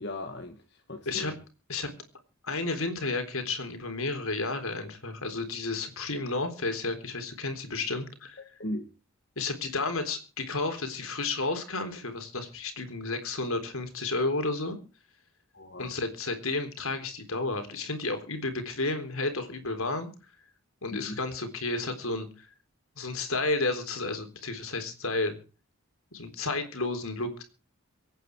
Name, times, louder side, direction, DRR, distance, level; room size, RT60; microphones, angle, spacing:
voice 1, 0.0-1.4 8.4-8.9 15.5-15.9 20.9-21.2, left 1 dB, 50° left, 1.7 m, -38 dB
voice 2, 2.4-8.4 9.4-14.8 15.8-20.1 20.8-22.5 23.0-25.4 26.1-27.4, left 3 dB, 75° left, 3.7 m, -32 dB
24.5 x 9.3 x 4.8 m
head